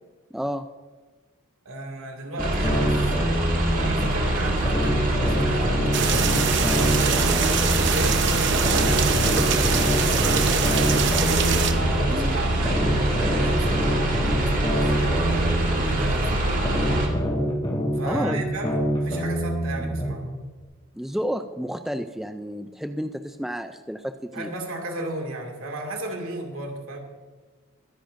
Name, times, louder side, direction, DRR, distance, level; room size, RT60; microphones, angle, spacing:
voice 1, 0.3-0.7 12.1-12.4 18.0-18.4 20.9-24.5, equal, ahead, 7 dB, 0.3 m, -31 dB
voice 2, 1.7-3.1 3.7-11.2 11.7-16.7 17.9-20.3 24.3-27.0, right 1 dB, 75° right, 2 dB, 2.2 m, -35 dB
sound 1, 2.4-4.1 4.6-8.1 8.6-12.1 12.6-16.1 16.6-20.1, equal, 25° left, 2.5 m, -26 dB
sound 2, 2.4-17.1, right 1 dB, 40° right, 1.9 m, -24 dB
sound 3, 5.9-11.7, right 6 dB, 55° right, 0.9 m, -24 dB
23.0 x 10.0 x 2.6 m, 1.4 s
head